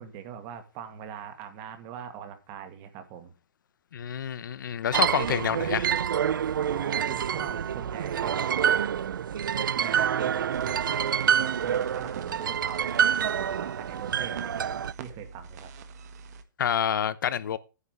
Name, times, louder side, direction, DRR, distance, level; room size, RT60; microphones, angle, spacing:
voice 1, 0.0-3.3 6.7-8.9 9.7-15.7, right 8 dB, 35° right, 2.0 m, -42 dB
voice 2, 3.9-5.9 16.6-17.6, left 9 dB, 75° left, 0.9 m, -28 dB
sound 1, 4.9-14.9, right 8 dB, 90° right, 0.5 m, -27 dB
sound 2, 10.5-16.4, right 6 dB, 55° right, 1.6 m, -45 dB
9.8 x 5.6 x 8.1 m
hypercardioid pair, 150°, 11 cm